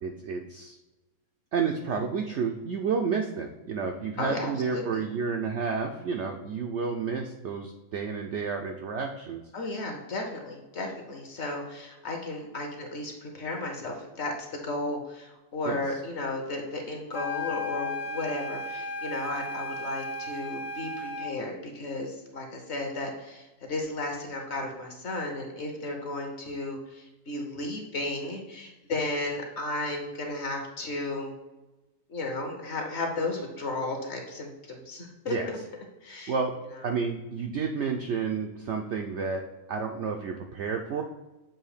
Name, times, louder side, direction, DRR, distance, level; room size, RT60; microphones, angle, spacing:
voice 1, 0.0-0.8 1.5-9.4 15.7-15.8 35.3-35.4 36.1-36.5 36.8-41.0, right 5 dB, 70° right, 3 dB, 0.6 m, -30 dB
voice 2, 4.2-5.0 9.5-31.3 32.1-35.6 36.0-36.3 36.7-36.8, left 2 dB, 50° left, 2 dB, 1.1 m, -34 dB
sound 1, 17.1-21.4, left 2 dB, 90° left, 0.4 m, -35 dB
7.5 x 2.7 x 4.9 m, 1.1 s
omnidirectional pair, 1.7 m